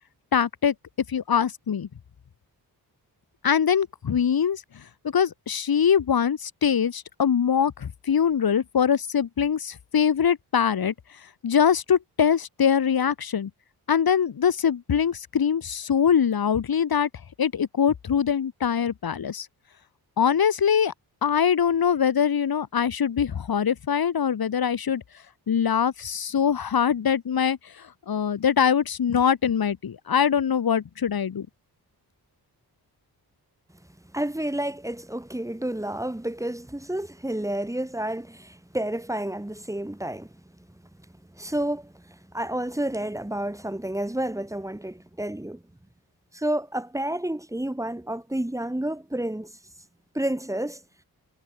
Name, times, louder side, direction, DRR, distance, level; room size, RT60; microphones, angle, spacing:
voice 1, 0.3-0.7 1.1-1.9 3.4-4.6 5.1-10.9 11.4-13.5 13.9-17.1 17.4-19.5 20.2-20.9 21.2-25.0 25.5-27.6 28.1-31.5, left 7 dB, 60° left, 5.5 m, -23 dB
voice 2, 34.1-40.3 41.4-42.0 42.3-45.6 46.3-49.5 50.1-50.8, right 1 dB, 10° right, 5.8 m, -30 dB
wide cardioid pair, 125°, 40 cm